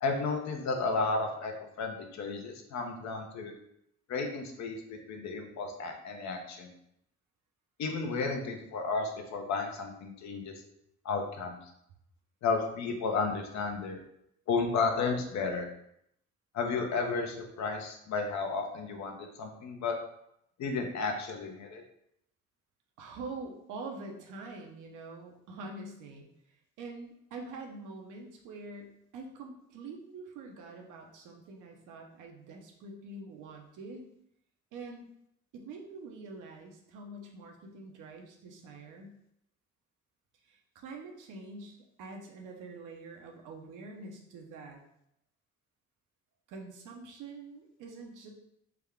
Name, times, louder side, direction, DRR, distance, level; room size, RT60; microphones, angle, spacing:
voice 1, 0.0-3.5 4.1-6.7 7.8-10.6 11.0-11.6 12.4-14.0 14.5-15.7 16.5-20.0 20.6-21.8, left 4 dB, 65° left, 4 dB, 0.7 m, -33 dB
voice 2, 23.0-26.3 26.8-34.0 34.7-35.1 35.5-39.1 40.4-44.8 46.5-48.3, right 3 dB, 90° right, 1 dB, 0.7 m, -45 dB
3.5 x 2.2 x 3.5 m, 0.75 s
cardioid pair, 90°, 30 cm